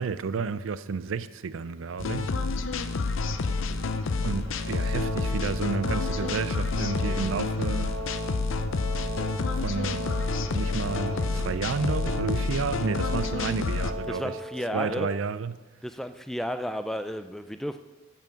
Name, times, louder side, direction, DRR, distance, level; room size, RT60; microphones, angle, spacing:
voice 1, 0.0-2.4 4.2-8.0 9.5-10.0 10.5-14.4 14.7-15.6, right 5 dB, 75° right, 0.4 m, -31 dB
sound 1, 2.0-13.9, left 3 dB, 70° left, 0.6 m, -29 dB
sound 2, 4.4-15.0, equal, 40° right, 1.5 m, -38 dB
voice 2, 14.1-15.1 15.8-17.8, equal, ahead, 0.3 m, -33 dB
8.9 x 5.8 x 6.9 m
head